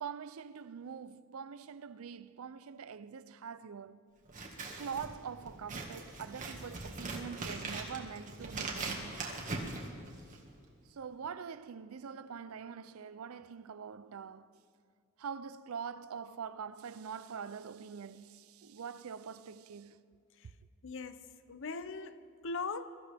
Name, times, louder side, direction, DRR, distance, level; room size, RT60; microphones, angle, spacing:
voice 1, 0.0-4.0 4.8-9.2 10.8-14.6 15.2-20.0, right 6 dB, 85° right, 0.5 m, -44 dB
Scissors, 4.2-10.5, right 3 dB, 40° right, 1.8 m, -41 dB
voice 2, 20.8-22.9, left 4 dB, 65° left, 0.6 m, -41 dB
22.5 x 14.0 x 3.5 m
head